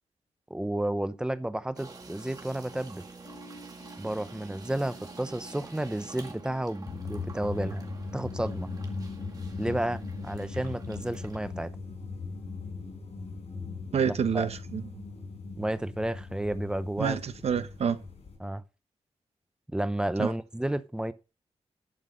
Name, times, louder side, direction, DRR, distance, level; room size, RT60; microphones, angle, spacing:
voice 1, 0.5-3.0 4.0-7.9 8.1-8.7 9.6-11.7 14.0-14.5 15.6-17.2 18.4-18.6 19.7-21.1, right 1 dB, 5° right, 0.7 m, -31 dB
sound 1, 1.8-11.4, right 3 dB, 35° right, 2.0 m, -48 dB
sound 2, 3.2-10.3, left 1 dB, 55° left, 2.5 m, -53 dB
sound 3, 6.9-18.4, left 4 dB, 80° left, 4.9 m, -39 dB
voice 2, 13.9-14.9 17.0-18.0 20.2-20.3, right 7 dB, 75° right, 1.1 m, -28 dB
11.0 x 6.2 x 5.2 m
wide cardioid pair, 150°, 11 cm